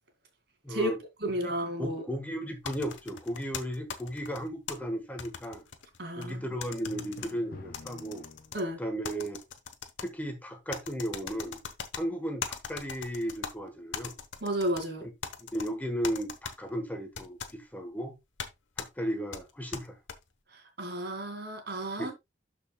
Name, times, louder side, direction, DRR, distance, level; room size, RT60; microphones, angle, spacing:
voice 1, 0.6-1.0 1.4-1.5 1.8-5.6 6.2-8.2 8.8-9.4 10.0-11.6 11.9-14.1 15.0-15.1 15.4-18.1 18.8-20.0 22.0-22.1, equal, 10° left, 1.3 m, -35 dB
voice 2, 1.2-2.0 6.0-6.4 8.5-8.8 14.4-15.0 20.5-22.1, right 1 dB, 60° right, 2.4 m, -32 dB
sound 1, 2.6-4.7 5.2-6.3 6.6-7.3 7.7-8.6 9.0-10.1 10.7-12.0 12.4-13.5 13.9-14.9 15.2-15.7 16.0-16.5 17.1-17.5 18.4-18.5 18.8-18.9 19.3-20.2, left 6 dB, 85° left, 1.1 m, -39 dB
Drum, 6.9-8.9, left 1 dB, 50° left, 1.1 m, -47 dB
12.5 x 5.2 x 2.3 m
head